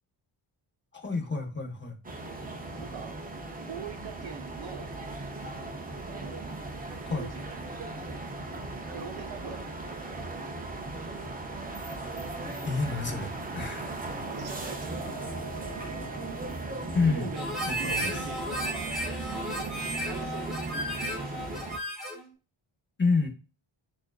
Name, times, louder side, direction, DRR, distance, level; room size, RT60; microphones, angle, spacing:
voice 1, 0.9-2.0 7.0-7.3 12.6-13.9 16.9-17.3 17.7-18.1 23.0-23.3, left 4 dB, 25° left, 4 dB, 0.7 m, -29 dB
sound 1, 2.0-21.8, right 2 dB, 20° right, 0.4 m, -37 dB
voice 2, 2.8-3.2 3.7-4.9 5.9-8.2 8.8-10.8 14.3-15.1 17.0-17.5 17.8-18.9 19.3-21.5, right 7 dB, 60° right, 6 dB, 0.7 m, -44 dB
Wind instrument woodwind instrument, 14.9-20.5, right 4 dB, 50° left, 1.4 m, -48 dB
Harmonica, 17.3-22.3, equal, ahead, 1.1 m, -34 dB
6.2 x 2.5 x 2.3 m, 0.33 s
wide cardioid pair, 175°, 50 cm